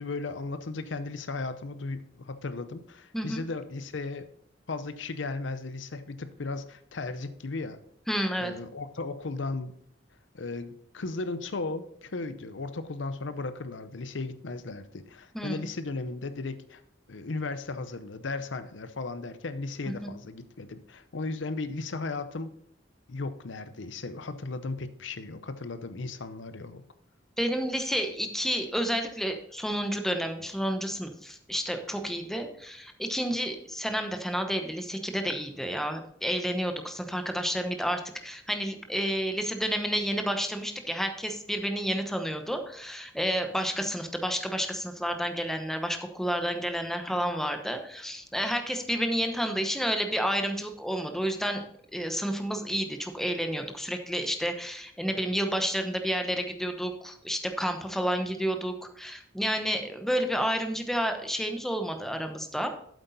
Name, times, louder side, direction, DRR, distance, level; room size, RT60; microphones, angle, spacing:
voice 1, 0.0-4.3 4.7-7.8 8.4-9.7 10.3-16.8 17.1-22.5 23.1-26.8, left 3 dB, 70° left, 12 dB, 0.7 m, -36 dB
voice 2, 8.1-8.5 15.3-15.6 19.9-20.1 27.4-51.6 51.9-62.7, equal, ahead, 6 dB, 0.9 m, -30 dB
8.1 x 8.0 x 4.0 m, 0.68 s
head